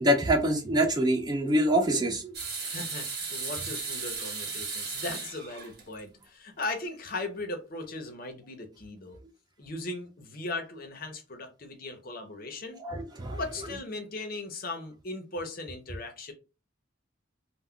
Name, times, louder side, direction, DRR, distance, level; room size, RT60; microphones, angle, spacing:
voice 1, 0.0-2.3 12.8-13.4, right 1 dB, 20° right, 0.3 m, -25 dB
sound 1, 2.3-6.2 6.6-6.7 7.8-7.9, right 4 dB, 55° right, 0.9 m, -36 dB
voice 2, 2.6-9.2 9.6-12.8 13.3-16.3, left 2 dB, 45° left, 0.6 m, -38 dB
2.2 x 2.1 x 3.5 m
head